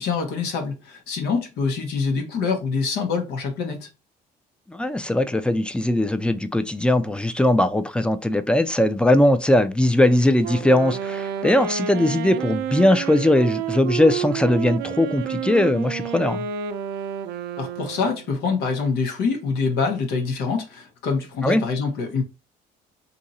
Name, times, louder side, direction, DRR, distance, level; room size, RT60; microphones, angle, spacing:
voice 1, 0.0-3.9 17.6-22.2, left 5 dB, 75° left, 1.0 m, -25 dB
voice 2, 4.7-16.4 21.4-21.6, left 1 dB, 5° left, 0.4 m, -20 dB
Wind instrument woodwind instrument, 10.4-18.3, right 8 dB, 80° right, 0.5 m, -30 dB
2.7 x 2.5 x 4.1 m
cardioid pair, 110°, 17 cm